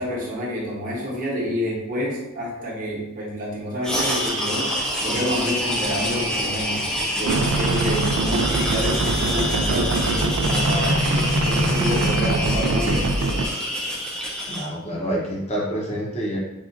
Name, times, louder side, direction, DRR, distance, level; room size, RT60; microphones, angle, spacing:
voice 1, 0.0-6.8 7.2-13.2, left 1 dB, 40° right, -4 dB, 0.9 m, -28 dB
sound 1, 3.8-14.7, equal, 5° left, 0.4 m, -27 dB
sound 2, 7.2-13.5, right 2 dB, 80° right, 0.4 m, -23 dB
voice 2, 14.5-16.4, right 1 dB, 30° left, -3 dB, 0.7 m, -27 dB
3.8 x 2.4 x 2.5 m, 0.92 s
head